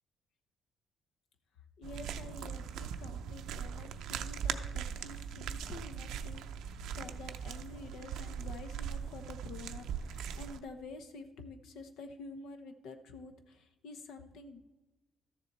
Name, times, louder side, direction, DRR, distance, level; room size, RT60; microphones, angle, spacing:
voice 1, 1.8-6.4 6.7-14.6, left 3 dB, 85° left, 7 dB, 1.1 m, -48 dB
sound 1, 1.8-10.6, right 8 dB, 85° right, 0.5 m, -40 dB
13.0 x 7.1 x 4.1 m, 1.1 s
cardioid pair, 90°, 0 cm